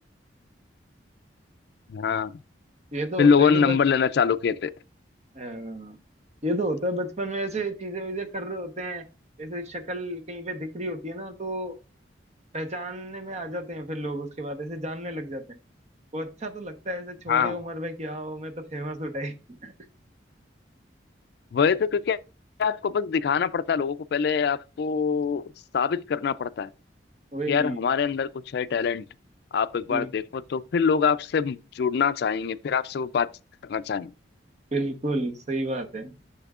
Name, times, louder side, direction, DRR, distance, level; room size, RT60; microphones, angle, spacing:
voice 1, 1.9-2.3 3.2-4.7 17.3-17.6 21.5-22.2 22.6-25.4 25.7-26.7 27.5-29.0 29.5-33.3 33.6-34.1, left 6 dB, 60° left, 0.3 m, -24 dB
voice 2, 2.9-3.8 5.3-6.0 6.4-9.0 9.4-11.8 12.5-15.4 16.1-19.3 19.6-19.7 27.3-27.8 29.9-30.1 34.7-36.1, right 1 dB, 40° right, 1.0 m, -32 dB
10.0 x 6.0 x 2.4 m
head